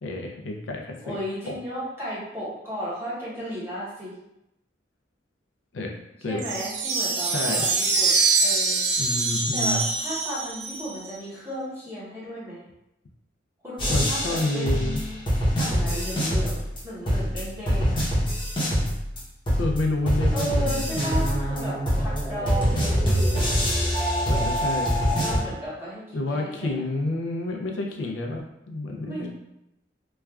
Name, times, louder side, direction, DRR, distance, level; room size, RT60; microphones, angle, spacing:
voice 1, 0.0-1.2 1.5-1.6 5.7-6.0 6.2-6.5 7.3-7.7 9.0-9.8 13.9-15.0 19.6-21.0 24.3-25.0 26.1-29.3, left 2 dB, 85° left, 2 dB, 0.5 m, -29 dB
voice 2, 1.0-4.2 6.3-8.9 9.5-12.6 13.6-15.2 15.6-18.0 20.3-22.9 24.2-24.4 25.2-26.8 29.0-29.3, equal, 15° right, -9 dB, 0.9 m, -34 dB
sound 1, 6.4-11.1, right 4 dB, 65° right, 0.5 m, -24 dB
sound 2, 13.8-16.8 17.1-19.2 19.5-25.4, equal, 25° left, 0.8 m, -24 dB
3.1 x 2.3 x 2.3 m, 0.85 s
head